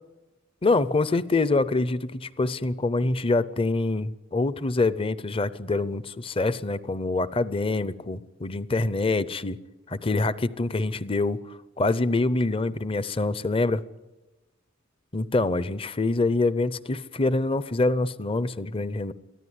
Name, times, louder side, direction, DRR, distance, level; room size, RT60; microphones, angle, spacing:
voice 1, 0.6-9.6 9.9-13.8 15.1-19.1, left 2 dB, 25° left, 16 dB, 0.7 m, -25 dB
24.0 x 14.0 x 9.6 m, 1.1 s
head